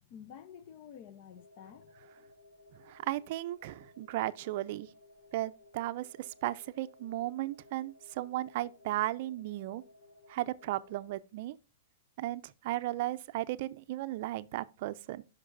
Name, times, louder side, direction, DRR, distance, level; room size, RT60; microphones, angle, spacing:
voice 1, 0.0-2.2, left 8 dB, 40° left, 0.7 m, -51 dB
sound 1, 1.3-11.1, left 2 dB, 90° left, 3.2 m, -59 dB
voice 2, 2.9-4.9 5.3-9.8 10.3-11.6 12.2-15.2, right 16 dB, 50° right, 0.5 m, -35 dB
10.0 x 6.0 x 2.5 m
hypercardioid pair, 155°, 0 cm